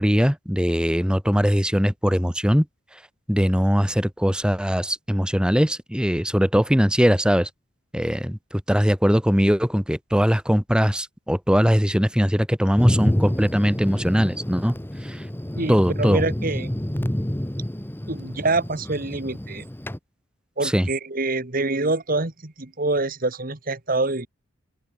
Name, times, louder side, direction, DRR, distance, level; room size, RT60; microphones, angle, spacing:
voice 1, 0.0-2.7 3.3-7.5 7.9-14.8 15.0-15.2 15.7-16.2 20.6-20.9, equal, 5° right, 4.0 m, -21 dB
Thunder, 12.8-20.0, equal, 10° left, 1.0 m, -28 dB
voice 2, 15.5-16.7 18.1-19.6 20.6-24.3, right 2 dB, 45° right, 1.7 m, -26 dB
open air
head